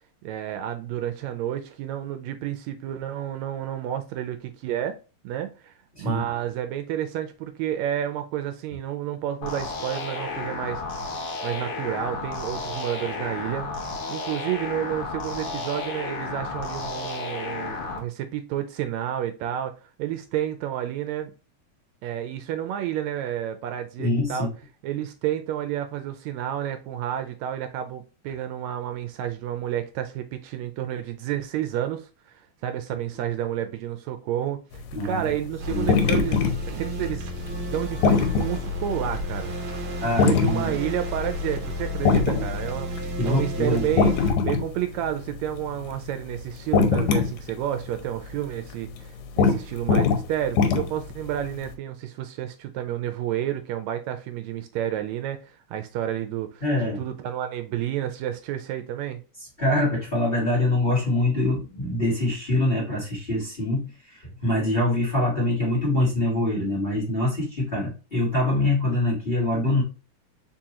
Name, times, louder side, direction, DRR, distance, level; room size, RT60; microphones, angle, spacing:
voice 1, 0.2-5.0 5.2-10.8 11.4-13.7 14.1-19.7 20.0-21.3 22.0-24.5 24.8-36.4 36.8-37.3 37.7-39.5 40.1-44.1 44.5-56.6 57.0-59.2, right 11 dB, 80° right, 1.7 m, -30 dB
sound 1, 9.4-18.0, left 3 dB, 55° left, 1.8 m, -32 dB
voice 2, 24.0-24.5 34.9-35.3 35.7-35.9 40.0-40.7 43.2-44.0 56.6-57.0 59.6-69.8, left 1 dB, 25° left, 1.6 m, -24 dB
sound 2, 34.9-38.6 39.0-39.1 40.2-40.6 41.0-41.1 41.3-41.6 42.0-43.4 43.7-44.7 45.0-46.1 46.4-47.5 47.8-48.0 48.3-48.4 48.9-49.0 49.4-49.6 49.9-51.1 51.7-51.8, left 5 dB, 85° left, 2.1 m, -21 dB
sound 3, 35.6-44.3, left 1 dB, 60° right, 1.4 m, -32 dB
4.6 x 3.7 x 2.8 m
omnidirectional pair, 3.3 m